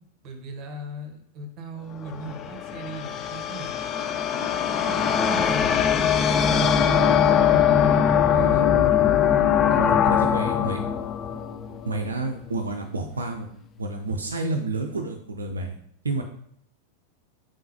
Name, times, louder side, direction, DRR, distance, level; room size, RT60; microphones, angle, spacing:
voice 1, 0.2-3.7 4.3-4.5 4.8-8.7 9.3-10.8, right 1 dB, 35° right, 4 dB, 0.9 m, -38 dB
sound 1, 2.0-12.3, left 8 dB, 30° left, 0.3 m, -21 dB
voice 2, 7.9-8.7 10.2-10.8 11.8-13.5 13.8-15.8 16.0-16.2, right 2 dB, 75° right, 3 dB, 0.4 m, -30 dB
4.8 x 3.7 x 2.8 m, 0.70 s
figure-of-eight pair, 90°, 0 cm